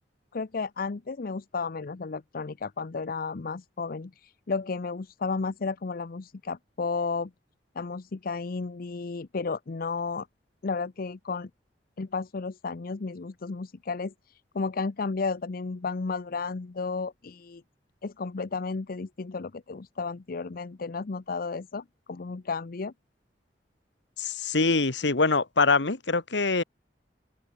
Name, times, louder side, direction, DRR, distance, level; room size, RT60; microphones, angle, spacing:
voice 1, 0.3-7.3 7.8-10.3 10.6-11.5 12.0-14.1 14.5-17.6 18.0-22.9, left 4 dB, 55° left, 0.6 m, -33 dB
voice 2, 24.2-26.6, left 3 dB, 85° left, 1.6 m, -24 dB
open air
head